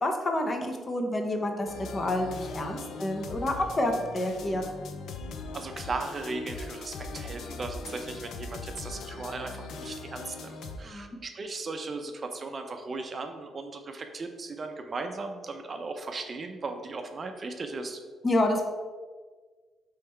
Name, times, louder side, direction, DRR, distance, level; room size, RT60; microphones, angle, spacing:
voice 1, 0.0-1.7 1.9-4.6 10.8-11.2 18.2-18.6, left 1 dB, 30° left, 3 dB, 0.6 m, -28 dB
sound 1, 1.7-10.8, left 3 dB, 75° left, 0.4 m, -40 dB
voice 2, 5.5-18.0, right 3 dB, 40° right, 6 dB, 0.5 m, -37 dB
3.6 x 3.1 x 4.4 m, 1.4 s
cardioid pair, 90°, 0 cm